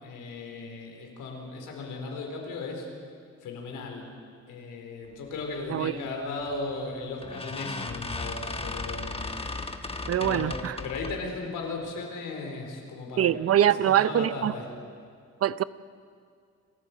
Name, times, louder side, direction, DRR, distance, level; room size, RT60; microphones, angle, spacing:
voice 1, 0.0-2.9 3.4-4.1 4.5-9.3 10.2-13.3 13.6-14.7, left 3 dB, 85° left, 2 dB, 4.4 m, -36 dB
sound 1, 6.5-6.7 7.2-11.3, left 2 dB, 20° left, 1.4 m, -36 dB
voice 2, 10.1-10.8 13.2-14.5 15.4-15.6, right 11 dB, 50° right, 17 dB, 0.7 m, -23 dB
29.0 x 14.0 x 8.5 m, 2.2 s
cardioid pair, 90°, 30 cm